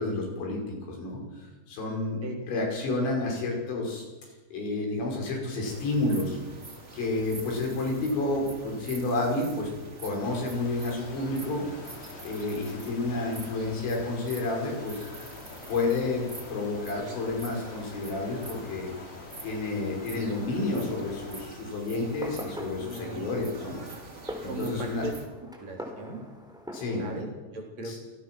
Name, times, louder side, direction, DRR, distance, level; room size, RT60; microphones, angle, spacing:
voice 1, 0.0-6.4 6.9-9.7 10.0-11.7 12.2-15.1 15.7-18.9 19.4-23.8 24.4-25.0 26.7-27.0 27.9-28.0, left 2 dB, 80° left, 0 dB, 7.9 m, -30 dB
voice 2, 2.2-2.6 22.8-23.3 24.5-25.1 25.6-26.2 27.0-28.0, right 2 dB, 40° right, 1 dB, 4.7 m, -37 dB
sound 1, 5.6-25.3, right 2 dB, 20° right, 2.0 m, -46 dB
sound 2, 10.2-21.5, left 4 dB, 60° left, 4.1 m, -46 dB
Fireworks, 22.0-27.3, equal, ahead, 3.1 m, -43 dB
27.0 x 18.5 x 6.2 m, 1.2 s
omnidirectional pair, 5.1 m